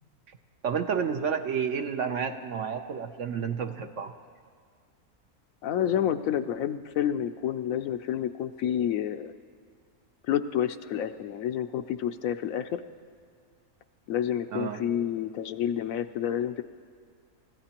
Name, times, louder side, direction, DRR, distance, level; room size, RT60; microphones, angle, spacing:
voice 1, 0.6-4.1 14.5-14.8, right 7 dB, 65° right, 6 dB, 0.9 m, -30 dB
voice 2, 5.6-9.3 10.3-12.8 14.1-16.6, left 10 dB, 70° left, 10 dB, 0.9 m, -29 dB
29.5 x 15.0 x 2.9 m, 2.1 s
omnidirectional pair, 1.6 m